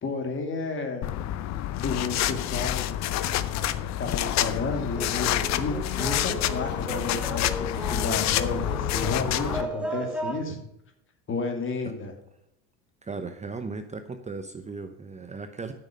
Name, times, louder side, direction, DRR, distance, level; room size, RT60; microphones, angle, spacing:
voice 1, 0.0-1.1 1.8-3.0 4.0-10.6 11.3-12.1, left 3 dB, 35° left, 4 dB, 2.4 m, -31 dB
sound 1, 1.0-9.6, left 12 dB, 50° left, 0.7 m, -28 dB
sound 2, 4.9-10.4, right 1 dB, 5° right, 1.5 m, -35 dB
voice 2, 13.0-15.7, right 4 dB, 20° right, 8 dB, 0.8 m, -37 dB
8.7 x 6.5 x 6.6 m, 0.79 s
supercardioid pair, 90°, 34 cm